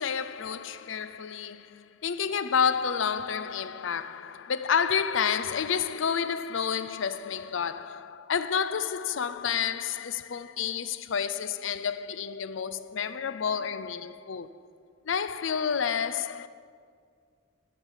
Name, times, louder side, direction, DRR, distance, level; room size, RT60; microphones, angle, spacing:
voice 1, 0.0-14.5 15.0-16.5, left 7 dB, 70° left, 0.5 m, -30 dB
13.0 x 7.3 x 8.1 m
head